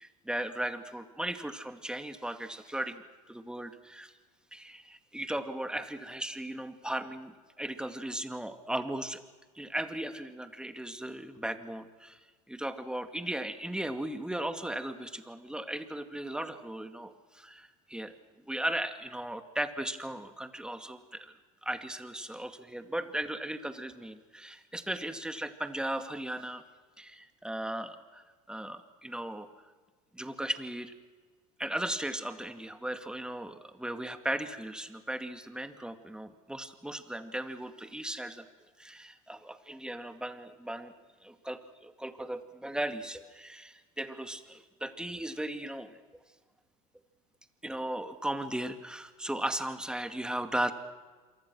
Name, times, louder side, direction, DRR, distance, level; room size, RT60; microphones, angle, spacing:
voice 1, 0.0-4.1 4.5-9.2 9.6-12.2 12.5-18.1 18.5-21.3 21.6-26.6 27.0-29.5 30.1-30.9 31.6-38.5 38.8-40.9 41.2-45.9 47.6-50.7, right 1 dB, 5° right, 8 dB, 2.3 m, -37 dB
27.5 x 24.0 x 6.3 m, 1.4 s
hypercardioid pair, 80°, 19 cm